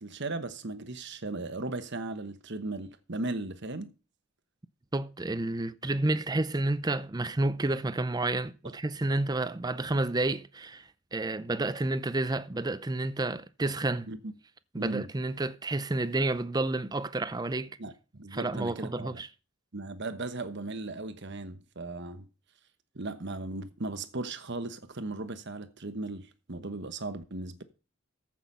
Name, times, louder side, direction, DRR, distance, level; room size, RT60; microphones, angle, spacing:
voice 1, 0.0-3.9 14.1-14.3 14.7-15.1 17.8-19.2 19.7-22.3 22.9-27.6, right 2 dB, 50° right, 1.1 m, -37 dB
voice 2, 4.9-14.1 14.7-17.7 18.3-19.3, right 2 dB, 20° right, 0.5 m, -30 dB
14.5 x 6.1 x 5.5 m
head